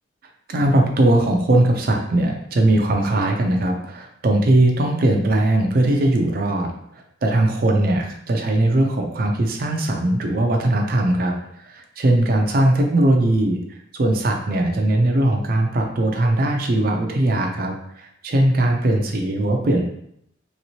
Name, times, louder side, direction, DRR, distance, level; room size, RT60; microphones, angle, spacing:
voice 1, 0.5-6.7 7.2-11.3 11.6-13.6 13.9-19.8, right 1 dB, 50° right, 2 dB, 0.4 m, -19 dB
3.2 x 3.0 x 2.7 m, 0.72 s
head